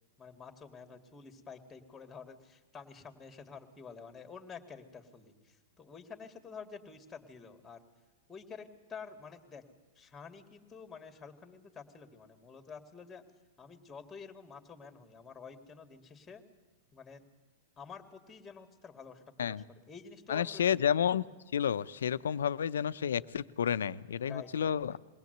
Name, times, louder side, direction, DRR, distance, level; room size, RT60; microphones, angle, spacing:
voice 1, 0.2-7.8 8.3-9.6 10.0-13.2 13.6-16.4 16.9-17.3 17.8-20.7 24.2-25.0, left 5 dB, 15° left, 6 dB, 2.2 m, -49 dB
voice 2, 20.3-21.2 21.5-25.0, left 8 dB, 90° left, 14 dB, 0.6 m, -30 dB
22.0 x 17.5 x 8.0 m, 1.3 s
hypercardioid pair, 125°, 0 cm